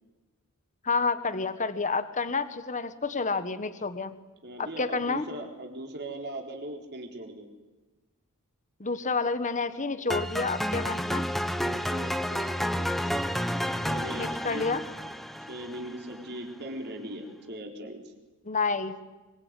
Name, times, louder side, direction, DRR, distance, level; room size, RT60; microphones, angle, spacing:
voice 1, 0.8-4.1 4.6-5.3 8.8-11.2 14.2-14.8 18.4-18.9, left 4 dB, 35° left, 11 dB, 1.5 m, -29 dB
voice 2, 4.4-7.5 11.6-12.9 13.8-14.7 15.5-18.0, right 1 dB, 50° right, 2 dB, 4.2 m, -39 dB
sound 1, 10.1-16.2, equal, ahead, 1.1 m, -30 dB
25.0 x 24.5 x 9.8 m, 1.2 s
head